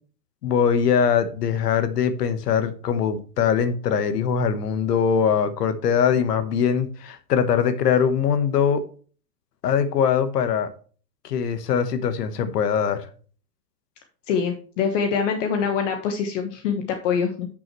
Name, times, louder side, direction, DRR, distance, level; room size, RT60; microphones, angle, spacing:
voice 1, 0.4-8.8 9.6-10.7 11.2-13.1, left 7 dB, 70° left, 1.4 m, -22 dB
voice 2, 14.3-17.5, left 6 dB, 50° left, 1.3 m, -24 dB
10.5 x 6.2 x 3.1 m
hypercardioid pair, 140°, 49 cm